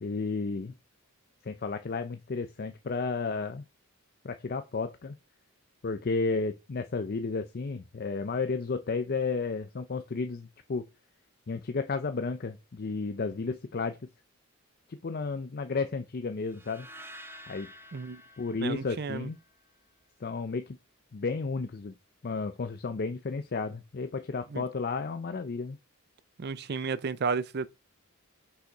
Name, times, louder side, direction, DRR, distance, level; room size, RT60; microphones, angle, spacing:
voice 1, 0.0-0.7 1.4-3.6 4.2-5.2 5.8-10.9 11.5-14.0 14.9-16.9 17.5-17.7 18.4-19.4 20.2-20.8 21.1-21.9 22.2-25.8, left 4 dB, 45° left, 0.5 m, -32 dB
sound 1, 16.5-19.7, equal, 10° right, 0.7 m, -50 dB
voice 2, 17.9-18.2 18.6-19.3 24.5-24.6 26.4-27.7, right 5 dB, 50° right, 0.5 m, -32 dB
6.4 x 5.7 x 4.5 m
head